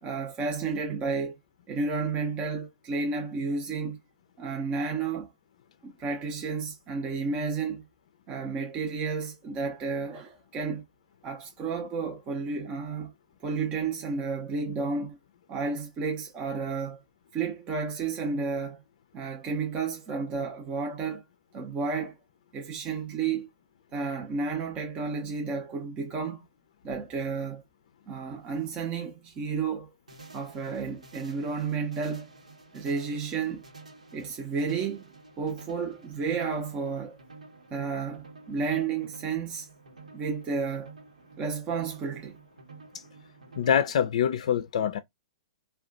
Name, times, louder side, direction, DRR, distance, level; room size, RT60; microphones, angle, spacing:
voice 1, 0.0-1.4 1.7-4.0 4.4-5.3 5.8-7.8 8.3-10.8 11.2-13.1 13.4-15.2 15.5-17.0 17.3-18.8 19.1-21.2 21.5-22.1 22.5-23.5 23.9-26.4 26.8-27.6 28.1-29.9 30.3-32.3 32.7-33.6 34.1-35.0 35.4-37.2 37.7-39.7 40.1-40.9 41.4-42.4, right 4 dB, 30° right, 0.6 m, -31 dB
sound 1, 30.1-43.7, right 3 dB, 85° right, 1.1 m, -51 dB
voice 2, 43.6-45.0, left 8 dB, 65° left, 0.4 m, -25 dB
2.3 x 2.2 x 3.8 m
hypercardioid pair, 120°, 4 cm